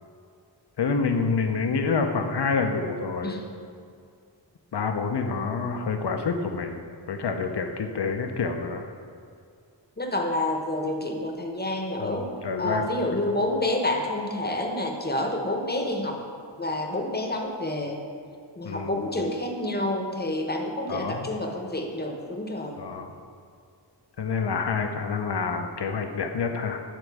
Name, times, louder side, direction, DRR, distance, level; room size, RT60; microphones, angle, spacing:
voice 1, 0.8-3.4 4.7-6.8 7.1-8.9 12.0-13.2 18.6-19.1 20.9-21.3 22.8-23.1 24.2-26.8, left 4 dB, 65° left, 5 dB, 0.7 m, -28 dB
voice 2, 10.0-12.3 12.6-16.2 16.6-18.0 18.6-22.8, left 1 dB, 20° left, 2 dB, 0.9 m, -28 dB
9.1 x 3.9 x 4.7 m, 2.2 s
wide cardioid pair, 55°, 44 cm